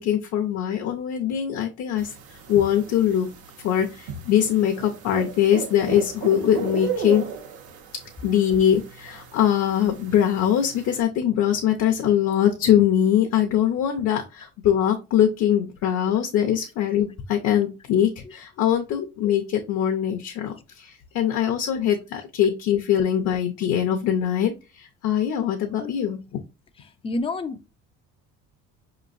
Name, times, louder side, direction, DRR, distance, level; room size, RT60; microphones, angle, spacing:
voice 1, 0.0-2.1 2.5-3.3 3.6-7.3 8.2-26.2, left 10 dB, 55° left, 0.7 m, -22 dB
sound 1, 2.0-11.0, right 6 dB, 75° right, 1.0 m, -36 dB
voice 2, 27.0-27.7, left 2 dB, 20° left, 0.4 m, -28 dB
5.0 x 3.0 x 2.5 m
cardioid pair, 120°, 30 cm